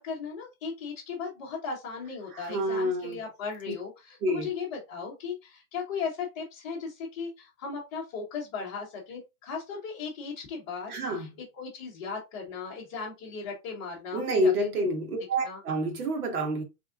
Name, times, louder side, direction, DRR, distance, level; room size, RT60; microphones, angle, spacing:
voice 1, 0.0-11.3 11.6-14.9 15.4-15.6, left 5 dB, 20° left, 0.8 m, -37 dB
voice 2, 2.3-3.2 4.2-4.5 10.9-11.3 14.1-16.6, equal, 75° right, 1.7 m, -28 dB
3.9 x 3.5 x 2.4 m
hypercardioid pair, 170°, 45 cm